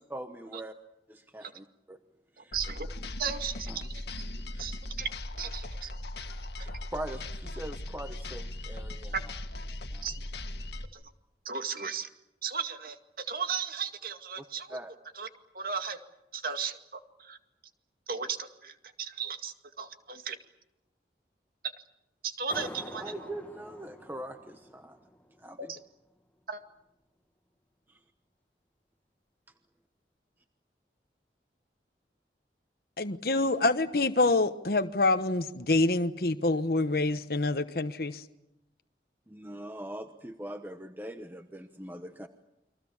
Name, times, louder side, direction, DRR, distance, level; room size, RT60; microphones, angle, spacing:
voice 1, 0.1-0.7 1.1-2.0 2.3-2.6 3.7-3.8 4.5-4.7 5.8-5.9 6.6-9.1 9.9-10.1 14.4-14.5 14.7-14.9 22.9-25.0 25.4-25.7 27.9-28.0 39.3-42.3, right 1 dB, 10° right, 7 dB, 1.0 m, -42 dB
voice 2, 2.4-2.9 3.2-4.0 4.6-5.1 5.4-5.9 9.1-9.2 10.0-10.2 10.9-11.0 11.4-12.1 12.4-14.8 15.2-15.3 15.5-16.0 16.3-17.4 18.1-20.3 22.2-23.1 25.6-25.8 26.5-26.6, right 6 dB, 55° right, 7 dB, 2.2 m, -35 dB
sound 1, 2.5-10.8, left 1 dB, 75° left, 1.9 m, -39 dB
sound 2, 22.5-25.8, equal, 10° left, 1.5 m, -46 dB
voice 3, 33.0-38.2, left 2 dB, 55° left, 9 dB, 1.1 m, -26 dB
29.5 x 23.5 x 7.2 m, 0.89 s
head